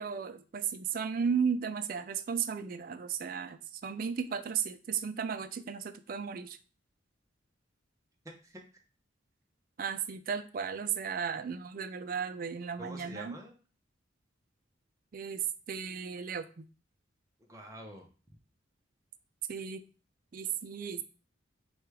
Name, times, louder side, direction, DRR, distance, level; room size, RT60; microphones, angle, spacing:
voice 1, 0.0-6.6 9.8-13.3 15.1-16.7 19.5-19.8 20.3-21.0, right 6 dB, 45° right, 10 dB, 0.4 m, -35 dB
voice 2, 8.2-8.8 12.8-13.6 17.4-18.1, right 1 dB, 15° right, 2 dB, 0.7 m, -47 dB
4.8 x 2.3 x 4.7 m, 0.36 s
head